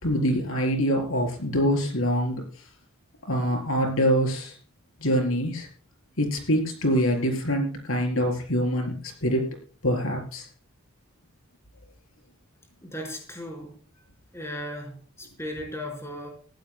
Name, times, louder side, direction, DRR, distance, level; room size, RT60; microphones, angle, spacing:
voice 1, 0.0-2.4 3.3-4.6 5.0-5.7 6.2-8.9 9.2-9.4 9.8-10.5, equal, 75° left, 3 dB, 4.1 m, -24 dB
voice 2, 12.8-13.8 14.3-16.3, left 1 dB, 15° left, 0 dB, 4.7 m, -36 dB
20.0 x 16.0 x 2.2 m, 0.40 s
head